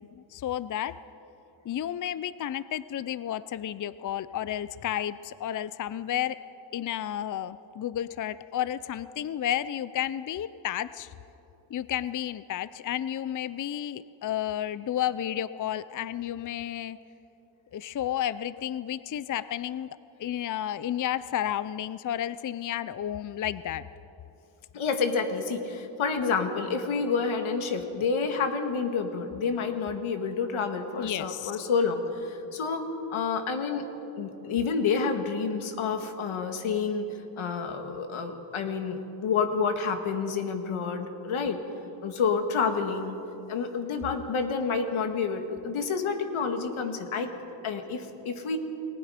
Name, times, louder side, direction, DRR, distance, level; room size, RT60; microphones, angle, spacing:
voice 1, 0.1-0.9 1.7-6.4 6.7-11.1 11.7-17.0 17.7-19.9 20.2-23.8 31.0-31.6, left 11 dB, 40° left, 15 dB, 0.5 m, -32 dB
voice 2, 24.7-33.9 34.2-37.1 37.4-41.6 42.0-43.2 43.5-47.3 47.6-48.6, left 5 dB, 90° left, 6 dB, 2.0 m, -29 dB
29.5 x 20.0 x 5.1 m, 3.0 s
wide cardioid pair, 115°, 47 cm